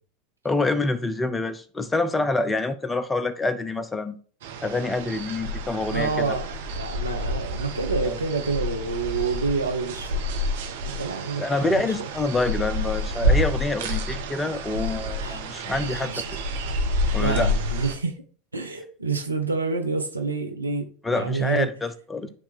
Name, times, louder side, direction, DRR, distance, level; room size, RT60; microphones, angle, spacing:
voice 1, 0.4-4.2 4.6-6.4 8.0-8.2 11.4-16.1 17.1-17.5 21.0-22.3, left 2 dB, 15° left, 0.7 m, -26 dB
sound 1, 4.4-17.9, equal, 65° right, 1.1 m, -28 dB
voice 2, 5.9-10.2 10.8-12.1 15.2-15.4 15.8-16.2 17.2-18.2 18.5-21.7, right 4 dB, 90° right, 0.9 m, -28 dB
9.9 x 3.3 x 3.7 m
figure-of-eight pair, 80°, 0 cm